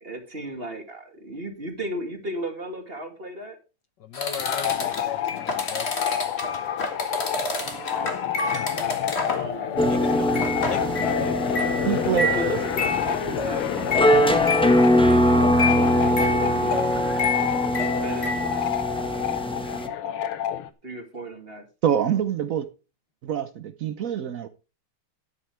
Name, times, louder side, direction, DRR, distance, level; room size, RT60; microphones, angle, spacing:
voice 1, 0.0-3.6 7.0-9.0 9.2-9.9 12.3-16.8 17.7-18.7 20.8-21.7, right 1 dB, 25° right, 2.4 m, -36 dB
voice 2, 4.0-5.9 9.9-12.4, left 9 dB, 65° left, 1.3 m, -38 dB
sound 1, 4.1-9.5 9.8-10.1 10.3-18.6, left 3 dB, 30° left, 1.8 m, -29 dB
sound 2, 4.4-20.7, left 10 dB, 90° left, 1.9 m, -29 dB
sound 3, 9.8-19.9, equal, 5° left, 0.6 m, -23 dB
voice 3, 11.8-12.3 21.8-22.7 23.2-24.5, right 9 dB, 90° right, 0.7 m, -25 dB
12.5 x 9.7 x 3.3 m
omnidirectional pair, 2.4 m